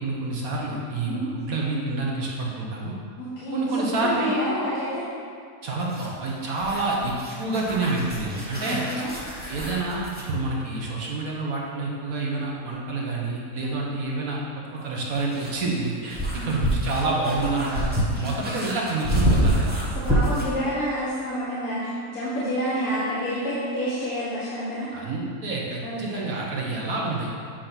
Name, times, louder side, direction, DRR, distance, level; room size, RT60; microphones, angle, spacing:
voice 1, 0.0-2.9 3.5-4.3 5.6-8.8 9.5-19.7 24.9-27.3, right 2 dB, 60° right, -3 dB, 1.5 m, -28 dB
voice 2, 3.2-5.1 8.6-9.1 16.3-16.5 19.9-24.9 25.8-26.4, equal, 60° left, -9 dB, 1.7 m, -29 dB
sound 1, 5.8-10.3 12.7-12.8 14.8-20.6, equal, 5° right, 0.9 m, -27 dB
8.9 x 3.2 x 5.7 m, 2.2 s
omnidirectional pair, 1.8 m